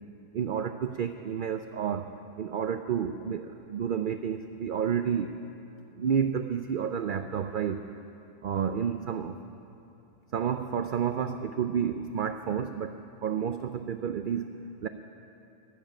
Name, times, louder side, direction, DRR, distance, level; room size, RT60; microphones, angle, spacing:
voice 1, 0.3-5.3 5.9-7.9 8.4-9.4 10.3-14.5 14.8-14.9, right 8 dB, 65° right, 9 dB, 0.5 m, -30 dB
22.0 x 7.3 x 8.9 m, 2.8 s
omnidirectional pair, 1.4 m